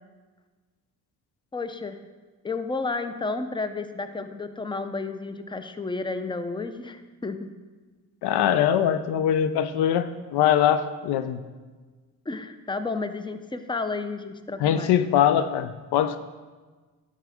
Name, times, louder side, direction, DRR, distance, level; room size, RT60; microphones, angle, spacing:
voice 1, 1.5-2.0 2.4-7.5 12.3-15.2, left 3 dB, 10° left, 10 dB, 0.6 m, -32 dB
voice 2, 8.2-11.4 14.6-16.2, left 9 dB, 85° left, 12 dB, 0.5 m, -22 dB
11.5 x 6.1 x 3.6 m, 1.3 s
supercardioid pair, 60°, 38 cm